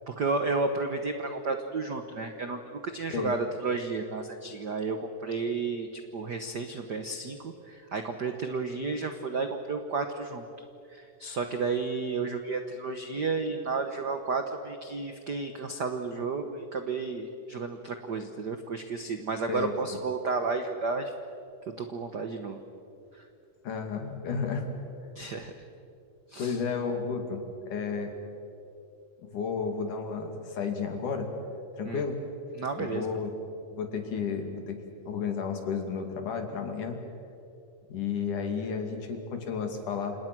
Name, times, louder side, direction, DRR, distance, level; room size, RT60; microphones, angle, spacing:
voice 1, 0.1-10.4 10.9-21.1 21.8-22.6 23.2-23.3 25.1-25.5 26.3-26.6 31.9-32.0 32.6-33.2, right 4 dB, 65° right, 6 dB, 1.0 m, -32 dB
voice 2, 23.6-24.7 26.4-28.1 29.2-31.3 31.8-32.2 32.8-33.3 33.7-34.8 35.1-37.0 37.9-40.2, left 5 dB, 75° left, 4 dB, 4.0 m, -32 dB
30.0 x 27.5 x 6.2 m, 2.7 s
omnidirectional pair, 3.6 m